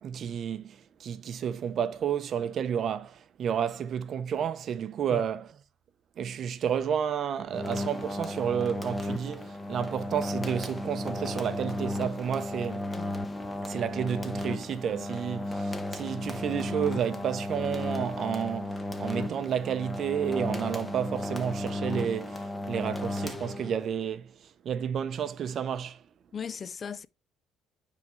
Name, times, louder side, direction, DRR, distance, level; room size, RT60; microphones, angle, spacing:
voice 1, 0.0-5.5 6.2-12.9 13.6-24.3 24.6-26.0, right 8 dB, 50° right, 0.6 m, -31 dB
sound 1, 7.5-24.0, left 1 dB, 15° left, 0.9 m, -34 dB
voice 2, 26.3-27.1, left 7 dB, 35° left, 0.4 m, -38 dB
9.5 x 3.6 x 3.1 m
cardioid pair, 120°, 0 cm